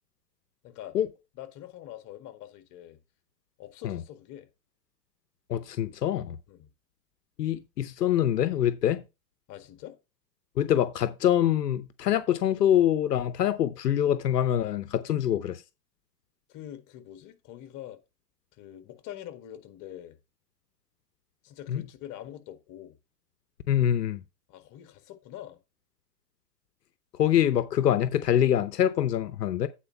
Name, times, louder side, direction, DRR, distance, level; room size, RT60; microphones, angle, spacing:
voice 1, 0.6-1.0 1.3-3.0 3.6-4.5 6.5-6.7 9.5-10.0 16.5-18.0 18.6-20.2 21.4-23.0 24.5-25.6, left 12 dB, 40° left, 1.8 m, -44 dB
voice 2, 5.5-6.4 7.4-9.0 10.6-15.6 21.7-21.8 23.7-24.2 27.2-29.7, left 10 dB, 85° left, 0.8 m, -25 dB
8.7 x 4.4 x 5.7 m
hypercardioid pair, 105°, 47 cm